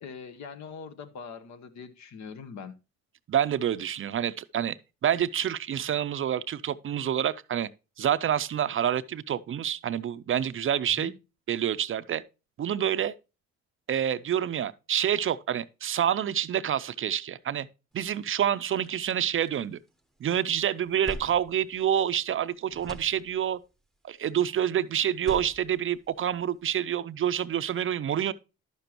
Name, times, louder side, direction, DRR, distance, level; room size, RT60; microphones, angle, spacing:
voice 1, 0.0-2.7 10.9-11.1, left 6 dB, 65° left, 1.0 m, -42 dB
voice 2, 3.3-4.8 5.0-7.7 8.0-11.1 11.5-12.2 12.6-13.1 13.9-17.7 17.9-19.8 20.2-23.6 24.0-28.3, right 9 dB, 45° right, 0.5 m, -27 dB
sound 1, 18.5-20.2 20.6-22.4 22.7-23.7 25.0-26.7, right 1 dB, ahead, 0.8 m, -45 dB
11.0 x 6.8 x 2.9 m
cardioid pair, 90°, 30 cm